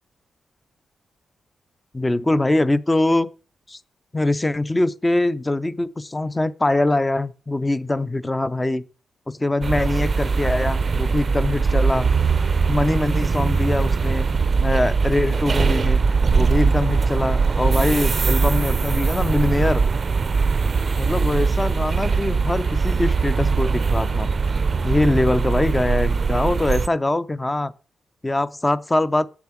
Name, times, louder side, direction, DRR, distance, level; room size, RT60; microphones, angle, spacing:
voice 1, 1.9-3.3 3.7-3.8 4.1-8.8 9.3-12.1 12.7-14.3 14.6-16.0 16.4-19.8 21.0-24.3 24.8-27.7 28.2-29.3, left 2 dB, 15° left, 0.6 m, -22 dB
sound 1, 9.6-26.9, right 4 dB, 40° right, 0.5 m, -21 dB
8.4 x 7.1 x 5.9 m
cardioid pair, 110°, 0 cm